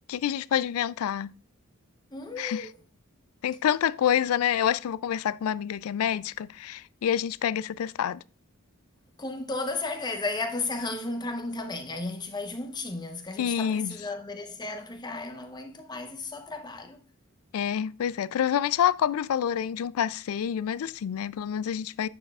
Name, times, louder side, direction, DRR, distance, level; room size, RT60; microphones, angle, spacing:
voice 1, 0.1-1.3 2.4-2.7 3.4-8.2 13.4-14.0 17.5-22.1, left 9 dB, 90° left, 0.3 m, -27 dB
voice 2, 2.1-2.7 9.2-17.0, left 3 dB, 20° left, 0.8 m, -34 dB
8.8 x 6.9 x 2.4 m
head